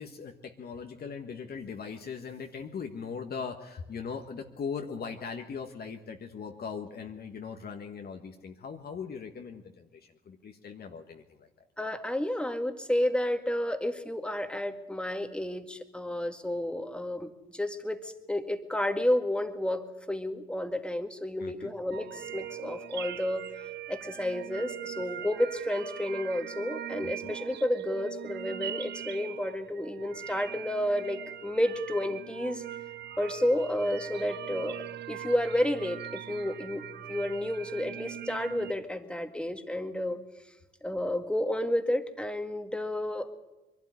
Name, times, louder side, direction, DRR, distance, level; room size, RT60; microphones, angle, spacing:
voice 1, 0.0-11.5 21.4-21.7 27.0-27.3, left 6 dB, 55° left, 4 dB, 1.5 m, -40 dB
voice 2, 11.8-23.5 23.9-32.6 33.2-40.2 40.8-43.3, left 1 dB, 5° left, 7 dB, 1.9 m, -31 dB
sound 1, 21.9-38.7, right 11 dB, 65° right, 0.7 m, -41 dB
22.0 x 12.0 x 9.8 m, 1.1 s
supercardioid pair, 65°, 19 cm